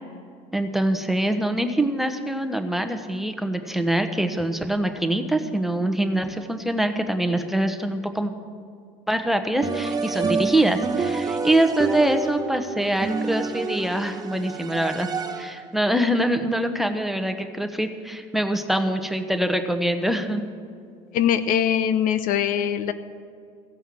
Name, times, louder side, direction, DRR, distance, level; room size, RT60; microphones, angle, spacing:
voice 1, 0.5-8.3 9.1-15.1 15.4-20.4, right 1 dB, ahead, 7 dB, 1.0 m, -24 dB
sound 1, 9.6-15.7, right 4 dB, 25° right, 1.0 m, -28 dB
voice 2, 21.1-22.9, left 9 dB, 60° left, 12 dB, 0.7 m, -22 dB
16.0 x 5.6 x 7.5 m, 2.3 s
supercardioid pair, 90°, 16 cm